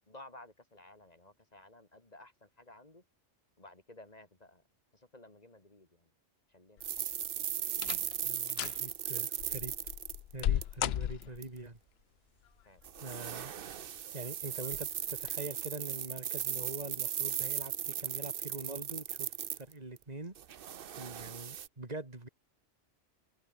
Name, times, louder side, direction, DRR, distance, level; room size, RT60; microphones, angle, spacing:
voice 1, 0.1-3.0 3.6-4.6 4.9-6.1 6.5-6.9 11.3-11.4 12.6-12.8, left 2 dB, 35° left, 2.9 m, -55 dB
sound 1, 6.8-7.2 7.7-8.2 8.5-8.8 9.4-11.6 12.8-13.4 13.8-13.9 14.6-14.9 15.2-15.3, left 12 dB, 65° left, 0.7 m, -36 dB
sound 2, 6.8-10.8 11.2-11.4 12.8-20.0 20.4-21.7, right 9 dB, 55° right, 0.8 m, -37 dB
voice 2, 8.2-9.7 10.3-11.8 13.0-13.5 14.1-20.4 21.0-22.3, right 2 dB, 35° right, 3.4 m, -44 dB
omnidirectional pair, 1.3 m